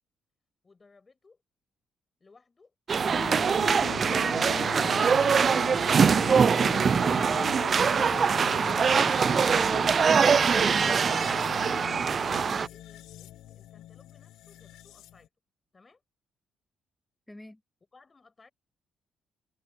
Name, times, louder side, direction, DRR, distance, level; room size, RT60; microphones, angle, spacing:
voice 1, 0.6-1.4 2.2-2.7 12.1-15.3 15.7-16.0 17.9-18.5, left 4 dB, 30° left, 7.0 m, -59 dB
voice 2, 2.9-4.8 17.3-17.6, left 1 dB, 10° left, 2.6 m, -45 dB
sound 1, 2.9-12.7, right 6 dB, 45° right, 0.3 m, -23 dB
sound 2, 3.0-15.3, left 13 dB, 85° left, 0.6 m, -41 dB
cardioid pair, 90°, 0 cm